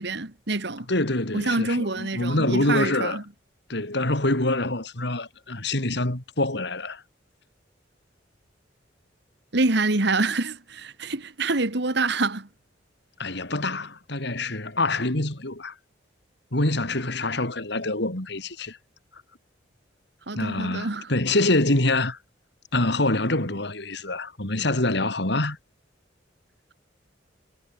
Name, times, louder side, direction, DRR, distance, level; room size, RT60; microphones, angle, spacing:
voice 1, 0.0-0.9 1.3-3.2 9.5-12.5 20.3-21.1, right 3 dB, 65° right, 2.0 m, -26 dB
voice 2, 0.9-3.2 3.7-7.0 13.2-15.7 16.5-18.8 20.4-22.2 22.7-25.6, left 2 dB, 65° left, 3.7 m, -25 dB
head